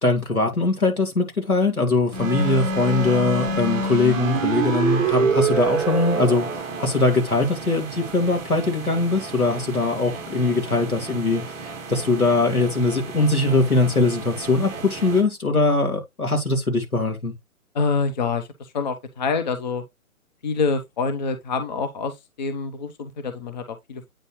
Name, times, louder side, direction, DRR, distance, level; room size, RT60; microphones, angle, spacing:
voice 1, 0.0-6.5 6.8-11.4 11.9-17.3, left 3 dB, 85° left, 2.7 m, -21 dB
sound 1, 2.1-15.2, right 3 dB, 5° right, 0.9 m, -28 dB
voice 2, 17.7-19.8 20.4-24.1, left 4 dB, 30° left, 0.8 m, -26 dB
8.8 x 4.1 x 3.1 m
figure-of-eight pair, 135°, 43 cm